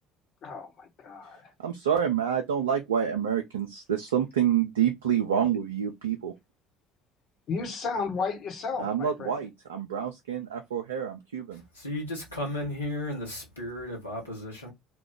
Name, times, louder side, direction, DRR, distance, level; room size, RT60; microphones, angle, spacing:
voice 1, 0.4-1.5 7.5-9.3, left 4 dB, 50° left, 1.1 m, -33 dB
voice 2, 1.6-6.3 8.8-11.6, right 9 dB, 75° right, 0.4 m, -27 dB
voice 3, 11.5-14.7, left 1 dB, 85° left, 1.3 m, -34 dB
2.9 x 2.3 x 3.5 m
figure-of-eight pair, 60°, 0 cm